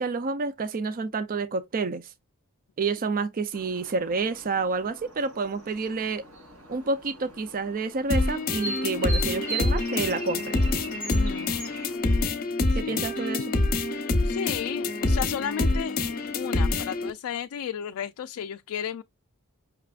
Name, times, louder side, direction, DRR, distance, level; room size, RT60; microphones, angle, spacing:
voice 1, 0.0-2.1 2.8-6.2 6.7-10.6 12.7-13.5, right 4 dB, 40° right, 0.5 m, -29 dB
sound 1, 3.5-12.0, right 2 dB, 85° right, 3.3 m, -40 dB
sound 2, 8.1-17.1, left 2 dB, 40° left, 0.9 m, -26 dB
voice 2, 11.1-11.5 12.7-13.0 14.2-16.0 16.3-19.0, left 8 dB, 65° left, 0.3 m, -33 dB
5.8 x 3.4 x 2.4 m
head